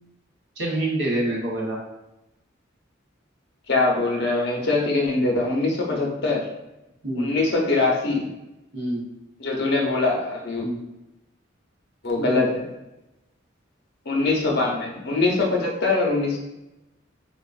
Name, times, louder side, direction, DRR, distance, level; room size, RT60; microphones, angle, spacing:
voice 1, 0.6-1.8 7.0-7.3 8.7-9.0 10.6-10.8 12.3-12.4, right 1 dB, 60° right, -4 dB, 1.0 m, -26 dB
voice 2, 3.7-6.4 7.2-8.3 9.4-10.7 12.0-12.7 14.1-16.4, left 3 dB, 55° left, -1 dB, 0.7 m, -23 dB
3.8 x 2.4 x 2.4 m, 0.93 s
head